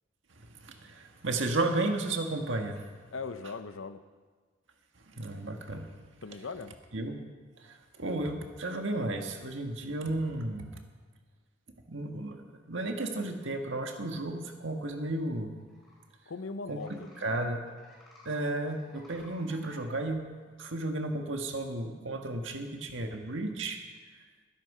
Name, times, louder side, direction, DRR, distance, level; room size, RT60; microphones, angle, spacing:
voice 1, 0.4-2.8 5.0-5.9 6.9-7.2 7.6-10.8 11.9-12.4 12.7-15.6 16.7-17.6 18.2-20.2 20.6-23.8, right 2 dB, 70° right, 4 dB, 1.6 m, -33 dB
voice 2, 3.1-4.0 6.2-6.7 16.3-17.4, left 4 dB, 80° left, 11 dB, 0.7 m, -40 dB
sound 1, 15.6-16.0 16.7-17.3 17.6-18.4 18.7-19.9, left 1 dB, ahead, 3.7 m, -57 dB
20.5 x 11.0 x 5.0 m, 1.5 s
head